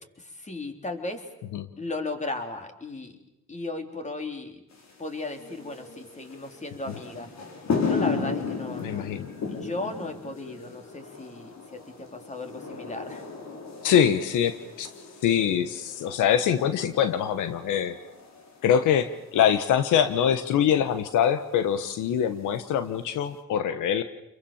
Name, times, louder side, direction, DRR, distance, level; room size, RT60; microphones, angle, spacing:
voice 1, 0.2-1.3 1.8-3.2 3.5-4.6 5.0-7.3 7.8-9.2 9.5-13.2, left 2 dB, 25° left, 5 dB, 3.7 m, -36 dB
sound 1, 4.7-23.4, left 5 dB, 60° left, 4.8 m, -36 dB
voice 2, 8.8-9.3 13.8-14.9 15.2-17.9 18.6-24.0, left 9 dB, 85° left, 11 dB, 1.3 m, -24 dB
28.5 x 23.0 x 7.2 m, 0.86 s
cardioid pair, 90°, 30 cm